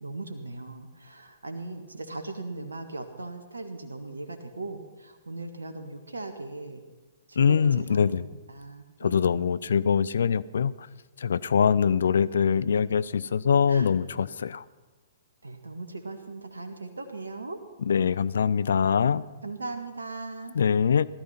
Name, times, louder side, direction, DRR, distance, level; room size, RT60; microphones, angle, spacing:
voice 1, 0.0-6.8 7.3-9.4 13.7-13.9 15.4-17.6 19.4-20.6, right 2 dB, 80° right, 6 dB, 1.6 m, -39 dB
voice 2, 7.4-8.2 9.0-10.9 11.2-14.6 17.8-19.2 20.5-21.1, left 7 dB, 65° left, 18 dB, 0.5 m, -23 dB
17.5 x 13.0 x 5.8 m, 1.2 s
figure-of-eight pair, 115°, 0 cm